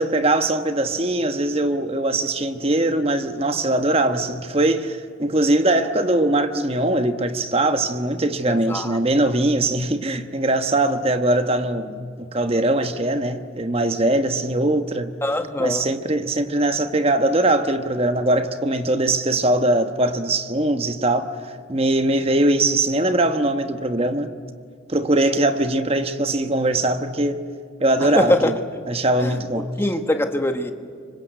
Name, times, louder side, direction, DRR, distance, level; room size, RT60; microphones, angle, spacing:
voice 1, 0.0-15.1 15.6-21.4 21.7-24.3 24.9-27.4 27.8-28.6 28.9-29.7, right 1 dB, 30° right, 1.2 m, -21 dB
voice 2, 8.5-9.0 15.2-15.9 28.0-28.6 29.2-30.7, left 1 dB, 10° left, 1.3 m, -23 dB
28.0 x 25.0 x 8.2 m
head